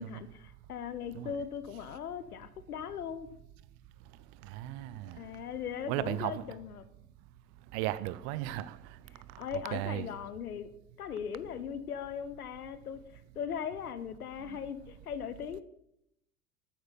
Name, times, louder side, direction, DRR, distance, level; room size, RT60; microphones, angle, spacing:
voice 1, 0.0-3.3 5.2-6.8 9.4-10.7 11.0-15.6, left 8 dB, 70° left, 0.9 m, -39 dB
voice 2, 4.5-5.2 5.9-6.4 7.7-8.8 9.7-10.1, right 14 dB, 30° right, 0.5 m, -35 dB
13.0 x 8.8 x 5.9 m
figure-of-eight pair, 85°, 46 cm